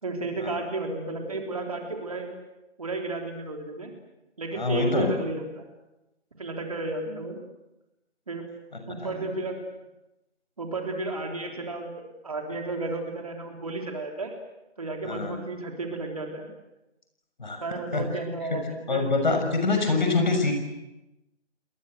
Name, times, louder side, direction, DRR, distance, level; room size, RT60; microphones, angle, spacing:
voice 1, 0.0-2.3 2.8-3.9 4.4-5.6 6.4-7.4 8.3-8.4 8.9-9.6 10.6-14.3 14.8-16.5 17.6-19.0, right 2 dB, 30° right, 3 dB, 3.6 m, -33 dB
voice 2, 4.6-5.1 9.0-9.1 15.0-15.4 17.4-17.6 17.9-18.0 18.5-18.6 18.9-20.5, left 3 dB, 40° left, 5 dB, 6.2 m, -25 dB
30.0 x 22.0 x 7.9 m, 0.96 s
figure-of-eight pair, 170°, 35 cm